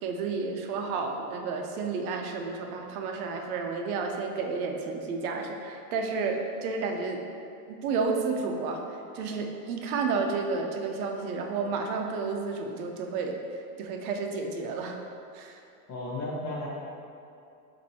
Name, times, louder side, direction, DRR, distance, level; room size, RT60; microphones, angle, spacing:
voice 1, 0.0-7.2 7.7-15.0 15.3-15.6, right 4 dB, 70° right, 3 dB, 0.6 m, -31 dB
voice 2, 15.9-16.7, left 2 dB, 30° left, -5 dB, 0.8 m, -34 dB
7.3 x 2.6 x 2.7 m, 2.5 s
supercardioid pair, 170°, 46 cm